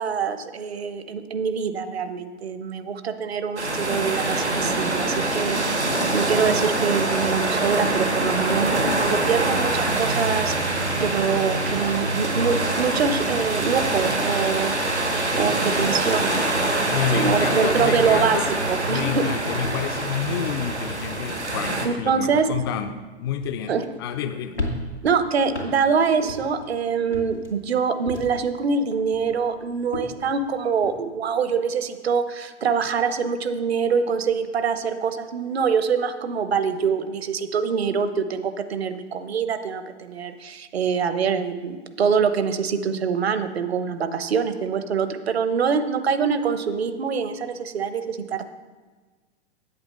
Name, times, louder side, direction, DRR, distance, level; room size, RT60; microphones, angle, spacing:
voice 1, 0.0-5.6 6.1-10.5 11.0-14.7 15.4-16.5 17.1-18.4 18.7-19.3 21.8-22.5 23.7-23.9 25.0-48.5, right 6 dB, 65° right, 10 dB, 1.0 m, -24 dB
sound 1, 3.6-21.9, right 2 dB, 90° right, 1.6 m, -24 dB
sound 2, 14.6-17.2 17.5-18.3 18.6-19.0 19.5-24.2 24.5-26.7 27.1-28.5 28.9-30.9, left 1 dB, 85° left, 2.3 m, -37 dB
voice 2, 16.9-18.5 18.9-24.6, left 9 dB, 25° left, 9 dB, 0.4 m, -29 dB
9.1 x 8.0 x 5.6 m, 1.3 s
figure-of-eight pair, 105°, 33 cm